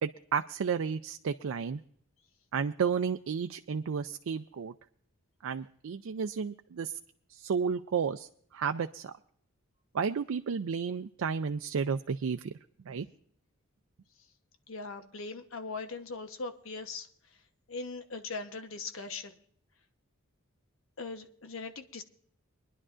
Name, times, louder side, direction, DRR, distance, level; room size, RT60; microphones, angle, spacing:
voice 1, 0.0-1.8 2.5-4.7 5.4-7.0 7.3-9.1 9.9-12.5 12.8-13.0, right 6 dB, 80° right, 8 dB, 0.4 m, -32 dB
voice 2, 14.7-17.1 17.7-19.4 21.0-22.0, left 3 dB, 75° left, 8 dB, 1.0 m, -40 dB
24.5 x 11.0 x 2.5 m, 0.63 s
head